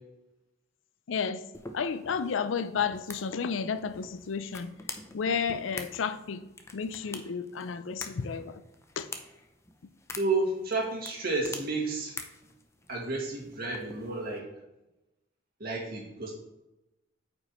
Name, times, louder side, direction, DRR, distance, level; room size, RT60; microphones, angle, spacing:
voice 1, 1.1-1.4 1.7-4.7 5.1-6.4 6.7-8.6 9.0-9.1, left 6 dB, 85° left, 13 dB, 0.5 m, -32 dB
sound 1, 1.5-14.4, left 3 dB, 15° left, 0.6 m, -46 dB
voice 2, 10.2-12.2 12.9-14.5 15.6-16.3, right 3 dB, 50° right, -3 dB, 2.2 m, -31 dB
8.7 x 5.2 x 3.1 m, 0.96 s
head